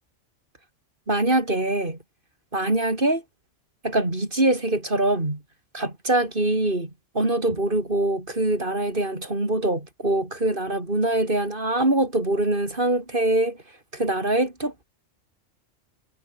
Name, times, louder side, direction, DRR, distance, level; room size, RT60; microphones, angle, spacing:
voice 1, 1.1-2.0 2.5-3.2 3.8-5.4 5.7-13.6 13.9-14.8, right 1 dB, 45° right, 4.5 m, -23 dB
omnidirectional pair, 1.3 m